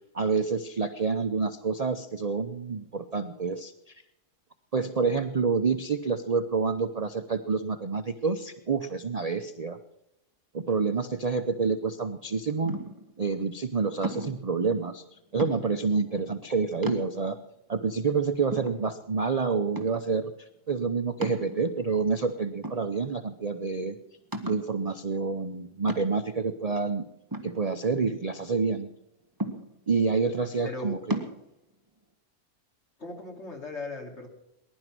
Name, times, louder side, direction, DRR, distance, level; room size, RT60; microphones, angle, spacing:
voice 1, 0.1-3.7 4.7-9.8 10.5-12.8 13.2-15.0 15.3-17.4 17.7-20.3 20.7-24.0 24.4-27.0 27.4-28.9 29.9-31.2, right 4 dB, 45° right, 9 dB, 0.5 m, -28 dB
sound 1, 12.6-13.1 14.0-14.5 15.4-15.9 16.4-16.5 16.8-17.5 18.0-18.1 18.5-19.3 19.7-20.2 21.2-21.9 22.6-23.3 23.6-23.7 24.3-24.7 25.9-26.4 27.3-28.2 29.4-30.0 31.1-31.4, right 1 dB, 15° right, 1.6 m, -35 dB
voice 2, 30.6-31.0 33.0-34.3, left 2 dB, 45° left, 2 dB, 2.8 m, -38 dB
20.0 x 11.0 x 6.1 m, 0.84 s
omnidirectional pair, 1.6 m